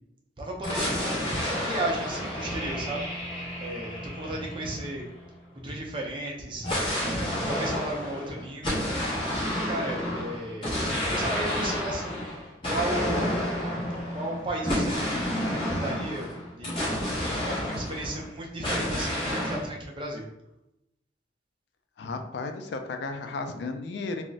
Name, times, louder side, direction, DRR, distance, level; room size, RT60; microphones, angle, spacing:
voice 1, 0.4-3.1 3.6-5.1 5.5-6.7 7.0-8.8 9.6-12.2 12.7-13.4 14.1-15.1 15.4-16.3 16.6-16.8 17.5-20.3, right 1 dB, 25° right, -1 dB, 0.4 m, -34 dB
sound 1, 0.6-5.3 6.6-18.3 18.6-19.7, left 1 dB, 25° left, 0.9 m, -30 dB
voice 2, 22.0-24.2, left 3 dB, 65° left, 6 dB, 0.3 m, -34 dB
2.3 x 2.0 x 3.8 m, 0.87 s
head